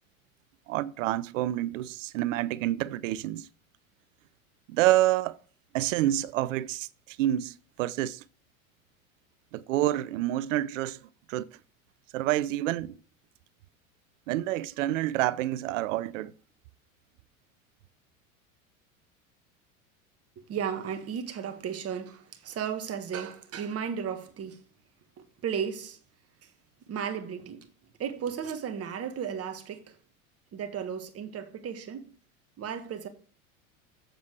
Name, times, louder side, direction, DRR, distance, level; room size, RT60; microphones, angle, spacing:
voice 1, 0.7-3.5 4.7-5.4 5.7-8.2 9.5-11.0 11.3-11.5 12.1-12.9 14.3-16.3, right 14 dB, 65° right, 0.6 m, -28 dB
voice 2, 20.4-24.6 25.2-26.0 26.4-26.5 26.8-27.7 28.0-30.0 30.5-32.1 32.6-33.1, right 7 dB, 35° right, 1.6 m, -35 dB
7.6 x 7.2 x 4.6 m
hypercardioid pair, 85°, 41 cm